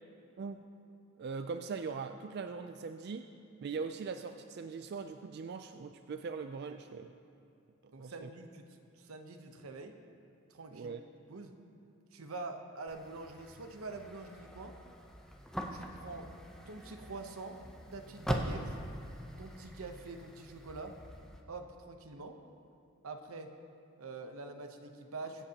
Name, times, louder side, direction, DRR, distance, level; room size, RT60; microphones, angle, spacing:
voice 1, 1.2-3.3 3.6-7.1 8.0-8.3 10.7-11.0, right 5 dB, 50° right, 8 dB, 0.3 m, -41 dB
voice 2, 7.9-8.7 9.0-10.0 10.5-11.0 11.3-11.5 12.1-14.8 15.7-16.3 16.7-17.6 17.9-18.8 19.4-21.0 21.5-22.4 23.0-23.5 24.0-25.4, right 3 dB, 85° right, 5 dB, 0.9 m, -45 dB
sound 1, 12.9-21.4, equal, 5° left, 0.6 m, -42 dB
23.0 x 8.0 x 2.9 m, 2.6 s
head